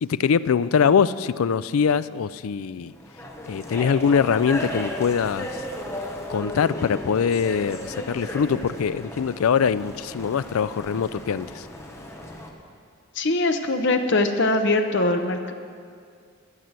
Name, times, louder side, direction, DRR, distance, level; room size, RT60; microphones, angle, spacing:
voice 1, 0.0-2.9 3.5-5.6 6.3-11.7, left 6 dB, 75° left, 16 dB, 0.4 m, -23 dB
sound 1, 2.9-12.5, left 1 dB, 10° left, 1.0 m, -35 dB
voice 2, 13.1-15.5, left 2 dB, 55° left, 6 dB, 0.9 m, -22 dB
13.5 x 7.6 x 8.2 m, 2.2 s
head